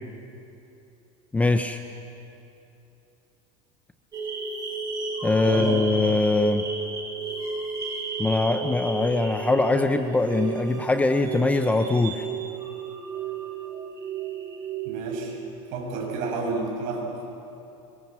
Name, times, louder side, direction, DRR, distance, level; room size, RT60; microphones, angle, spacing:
voice 1, 1.3-1.8 5.2-6.6 8.2-12.2, left 2 dB, 10° left, 7 dB, 0.7 m, -22 dB
sound 1, 4.1-15.0, right 4 dB, 20° right, 2.8 m, -33 dB
voice 2, 5.4-5.8 14.9-15.4 15.7-17.2, right 3 dB, 55° right, 0 dB, 6.9 m, -30 dB
25.5 x 23.5 x 7.3 m, 2.8 s
cardioid pair, 155°, 17 cm